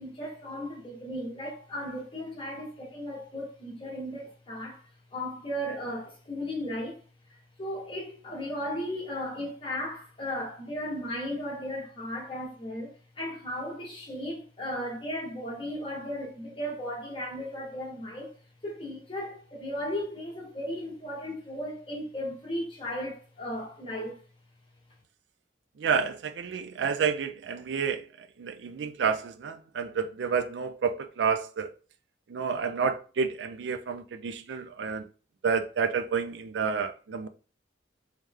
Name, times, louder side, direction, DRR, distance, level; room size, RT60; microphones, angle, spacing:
voice 1, 0.0-4.8 5.1-7.0 7.6-18.3 18.6-24.2, equal, 30° left, 1.4 m, -36 dB
voice 2, 25.8-31.7 32.3-35.1 35.4-37.3, right 6 dB, 70° right, 0.4 m, -30 dB
3.2 x 3.2 x 3.6 m
head